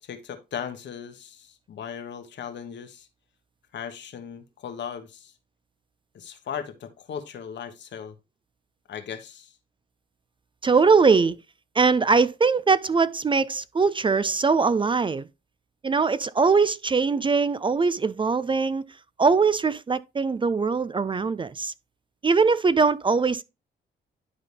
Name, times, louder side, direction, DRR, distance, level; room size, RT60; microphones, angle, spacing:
voice 1, 0.0-3.1 3.7-5.3 6.1-8.2 8.9-9.6, left 8 dB, 70° left, 1.3 m, -37 dB
voice 2, 10.6-11.4 11.8-15.3 15.8-18.8 19.2-21.7 22.2-23.4, right 4 dB, 25° right, 0.4 m, -21 dB
11.0 x 4.0 x 3.4 m
cardioid pair, 75°, 19 cm